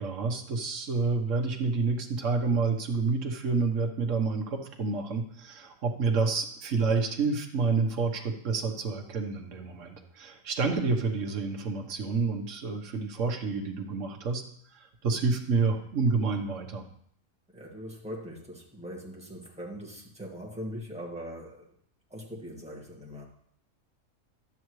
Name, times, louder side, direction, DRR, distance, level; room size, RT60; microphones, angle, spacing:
voice 1, 0.0-14.4 14.7-16.9, right 4 dB, 60° right, 2 dB, 1.4 m, -29 dB
voice 2, 17.5-21.7 22.1-23.3, equal, 5° right, -4 dB, 1.8 m, -41 dB
11.5 x 8.7 x 3.1 m, 0.66 s
omnidirectional pair, 1.5 m